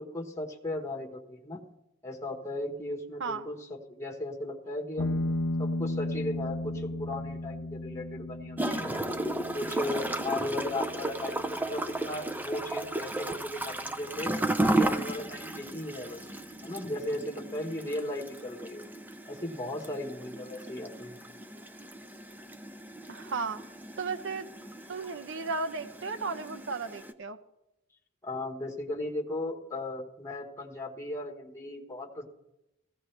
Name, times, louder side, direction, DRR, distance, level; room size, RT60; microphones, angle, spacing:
voice 1, 0.0-1.6 2.0-5.2 5.6-9.1 9.5-14.3 14.7-16.3 16.6-18.8 19.3-21.2 28.2-32.3, left 1 dB, 15° left, 0 dB, 1.2 m, -36 dB
sound 1, 5.0-14.0, left 1 dB, 80° left, 0.5 m, -36 dB
Gurgling / Toilet flush, 8.6-27.1, right 1 dB, 10° right, 0.5 m, -34 dB
voice 2, 23.1-23.6 24.0-24.5 24.9-27.4, right 4 dB, 60° right, 9 dB, 0.8 m, -34 dB
16.0 x 15.0 x 3.3 m, 0.90 s
head